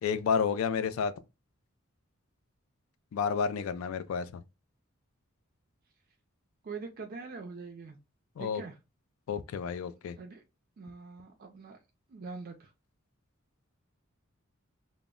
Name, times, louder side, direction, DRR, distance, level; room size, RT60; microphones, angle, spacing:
voice 1, 0.0-1.1 3.1-4.4 8.4-8.6 9.3-10.2, left 6 dB, 70° left, 0.3 m, -30 dB
voice 2, 6.6-8.0 8.4-8.8 10.2-10.4 10.8-11.8 12.1-12.7, right 4 dB, 45° right, 0.4 m, -43 dB
2.0 x 2.0 x 3.5 m
head